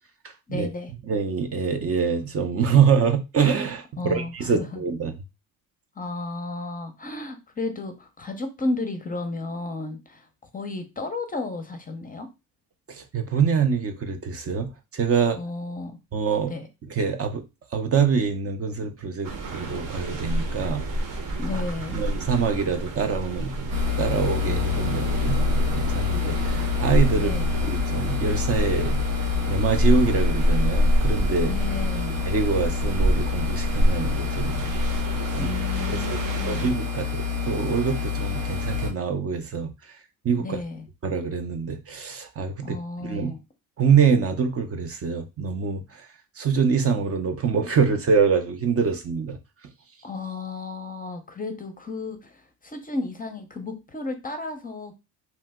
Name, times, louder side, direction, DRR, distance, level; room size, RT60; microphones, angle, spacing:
voice 1, 0.5-0.9 4.0-4.8 6.0-10.3 10.5-12.3 15.3-16.0 16.5-16.7 21.4-22.0 27.1-27.5 31.5-32.2 35.4-36.7 40.4-40.9 42.6-43.4 50.0-54.9, left 2 dB, 20° left, 0.6 m, -33 dB
voice 2, 1.1-5.1 12.9-15.4 16.1-16.5 16.9-17.4 17.7-20.8 21.9-23.7 24.0-29.1 29.5-31.5 32.3-34.7 35.3-35.5 35.9-36.2 36.4-39.7 40.2-40.6 41.0-43.3 43.8-46.0 46.4-49.4, right 6 dB, 35° right, 0.6 m, -25 dB
sound 1, 19.2-36.7, equal, 50° right, 1.0 m, -27 dB
sound 2, 23.7-38.9, left 7 dB, 75° right, 1.7 m, -28 dB
2.9 x 2.0 x 3.5 m
supercardioid pair, 70°, 40 cm